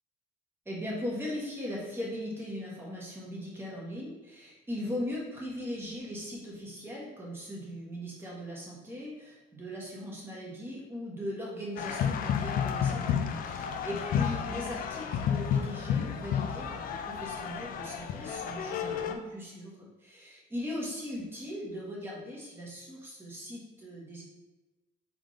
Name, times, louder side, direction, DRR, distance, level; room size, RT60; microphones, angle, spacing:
voice 1, 0.6-24.2, left 1 dB, 15° right, -5 dB, 1.5 m, -39 dB
sound 1, 11.8-19.1, left 8 dB, 60° left, 0.4 m, -31 dB
3.7 x 3.5 x 3.7 m, 1.1 s
cardioid pair, 110°, 17 cm